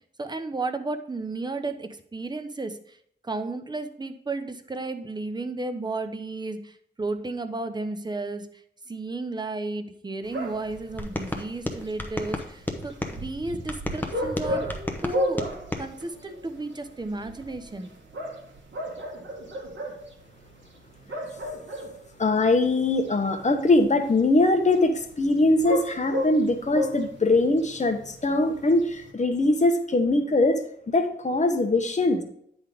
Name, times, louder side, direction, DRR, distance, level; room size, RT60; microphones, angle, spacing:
voice 1, 0.2-3.0 3.2-8.5 8.9-14.7 15.0-15.5 15.8-17.9, right 3 dB, 25° right, 8 dB, 0.7 m, -33 dB
sound 1, 10.2-29.1, equal, 85° right, 1.5 m, -35 dB
sound 2, 11.0-13.2 13.7-15.9, left 1 dB, 10° left, 0.9 m, -32 dB
voice 2, 22.2-30.6 30.9-32.2, left 2 dB, 40° left, 6 dB, 1.0 m, -22 dB
9.7 x 3.9 x 5.0 m, 0.67 s
wide cardioid pair, 95°, 19 cm